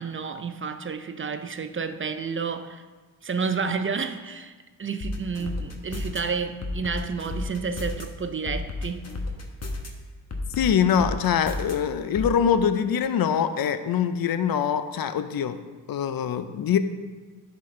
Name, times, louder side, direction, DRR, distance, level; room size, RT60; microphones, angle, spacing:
voice 1, 0.0-2.9 3.2-4.5 4.8-9.1, right 5 dB, 30° right, 8 dB, 0.4 m, -30 dB
sound 1, 5.0-6.2 6.6-8.0 8.5-9.9 10.3-11.7 12.2-12.3, left 2 dB, 40° left, 1.1 m, -32 dB
voice 2, 10.6-15.6 15.9-16.8, left 8 dB, 60° left, 11 dB, 0.6 m, -23 dB
10.5 x 4.1 x 3.2 m, 1.4 s
cardioid pair, 65°, 41 cm